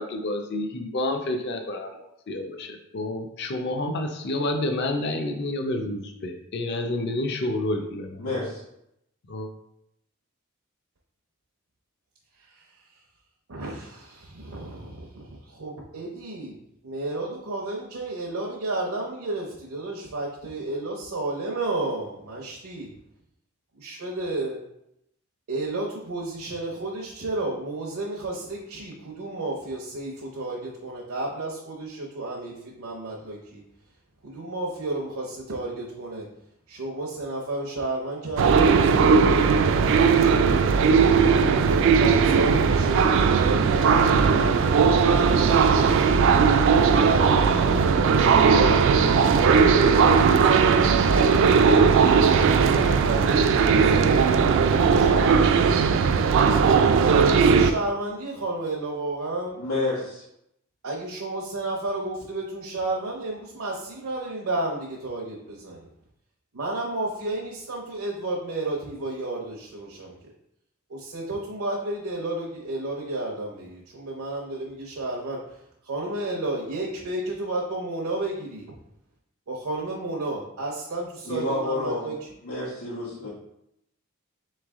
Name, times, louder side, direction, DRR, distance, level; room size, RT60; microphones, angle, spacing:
voice 1, 0.0-2.0 2.3-8.3 9.3-9.5, left 1 dB, 50° left, 5 dB, 0.5 m, -29 dB
voice 2, 8.2-8.6 59.6-60.2 81.2-82.1 82.4-83.3, left 2 dB, 90° left, -10 dB, 1.2 m, -29 dB
voice 3, 13.5-16.5 16.8-22.9 23.8-24.6 25.5-33.6 34.2-36.3 36.7-39.4 39.9-40.7 41.7-45.9 46.7-48.8 49.0-53.2 53.7-55.9 57.0-59.6 60.8-65.9 66.5-70.2 70.9-75.4 75.8-78.7 79.5-82.2, right 2 dB, 80° right, -3 dB, 0.7 m, -32 dB
sound 1, 38.4-57.7, right 5 dB, 60° right, 0.3 m, -18 dB
4.0 x 3.2 x 3.5 m, 0.80 s
head